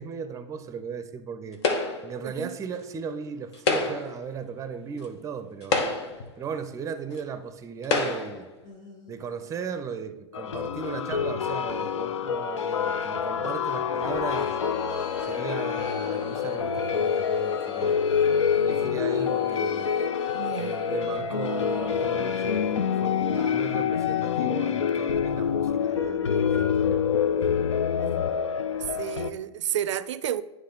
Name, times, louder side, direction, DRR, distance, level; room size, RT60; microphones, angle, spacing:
voice 1, 0.0-1.6 2.0-5.8 6.4-8.5 9.1-14.6 15.2-18.0 18.6-20.0 20.5-27.0, right 6 dB, 20° right, 0.5 m, -36 dB
sound 1, 1.6-2.2 3.5-4.2 5.0-5.1 5.6-6.3 7.2-7.3 7.8-8.4, left 3 dB, 65° left, 1.1 m, -27 dB
voice 2, 2.2-2.6 20.3-20.8 24.7-24.8 27.9-28.2 29.0-30.4, right 10 dB, 80° right, 0.4 m, -31 dB
sound 2, 8.6-9.6 10.4-10.5 14.1-22.7 23.2-24.1, left 1 dB, 30° left, 1.6 m, -43 dB
sound 3, 10.3-29.3, left 7 dB, 85° left, 0.4 m, -26 dB
9.4 x 3.2 x 3.8 m
hypercardioid pair, 100°, 15 cm